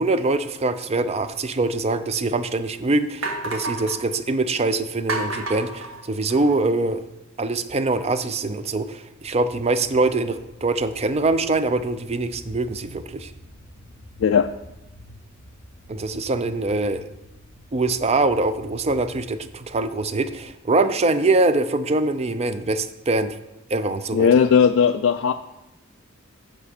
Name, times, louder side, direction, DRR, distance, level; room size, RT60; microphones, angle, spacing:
voice 1, 0.0-7.0 7.4-13.3 15.9-17.1 17.7-23.4 23.7-24.3, right 2 dB, 30° right, 11 dB, 0.5 m, -23 dB
sound 1, 3.2-4.0 5.1-6.6, right 2 dB, 70° right, 1.4 m, -30 dB
sound 2, 9.1-20.5, left 1 dB, 85° right, 3.0 m, -47 dB
voice 2, 24.1-25.3, left 7 dB, 70° left, 6 dB, 0.3 m, -17 dB
8.4 x 5.0 x 6.5 m, 0.91 s
head